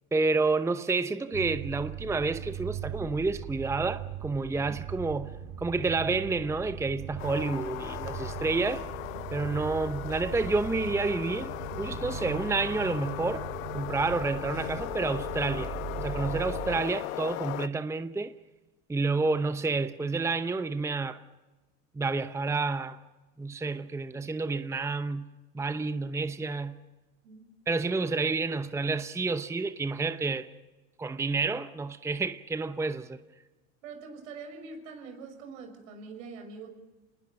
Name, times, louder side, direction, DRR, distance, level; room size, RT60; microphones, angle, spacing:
voice 1, 0.1-5.3 5.6-8.8 9.3-13.5 13.7-18.3 18.9-21.2 21.9-23.0 23.4-25.3 25.5-26.8 27.7-30.5 31.0-33.2, right 3 dB, 5° right, 0.8 m, -29 dB
sound 1, 1.3-16.8, right 8 dB, 60° right, 4.2 m, -39 dB
sound 2, 7.2-17.7, left 16 dB, 80° left, 0.8 m, -38 dB
voice 2, 33.8-36.7, right 4 dB, 75° right, 6.1 m, -44 dB
27.5 x 20.0 x 6.5 m
hypercardioid pair, 90°, 40 cm